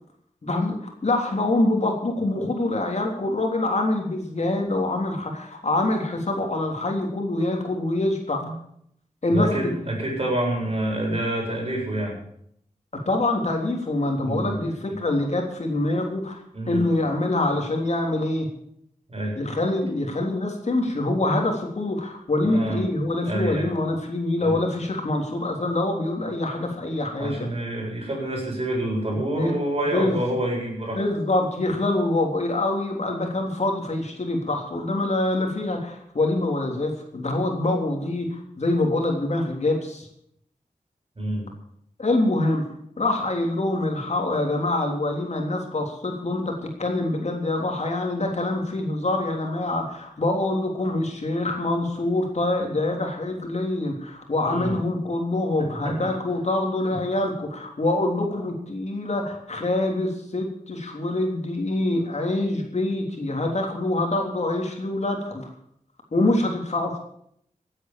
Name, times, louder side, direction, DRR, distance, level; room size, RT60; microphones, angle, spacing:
voice 1, 0.4-8.4 9.2-9.7 12.9-16.4 16.7-18.5 19.3-27.4 29.3-29.6 29.9-30.2 30.9-40.1 42.0-42.6 43.0-65.5 66.1-67.0, left 2 dB, 55° left, 2 dB, 3.4 m, -25 dB
voice 2, 9.3-12.2 14.2-14.6 14.9-15.0 16.5-16.9 19.1-19.3 22.4-22.8 23.3-23.7 24.4-24.6 27.2-31.0 41.2-41.4 54.5-54.8 55.6-56.1, right 1 dB, 45° right, -1 dB, 7.6 m, -27 dB
16.5 x 9.3 x 7.5 m, 0.70 s
wide cardioid pair, 85°, 14 cm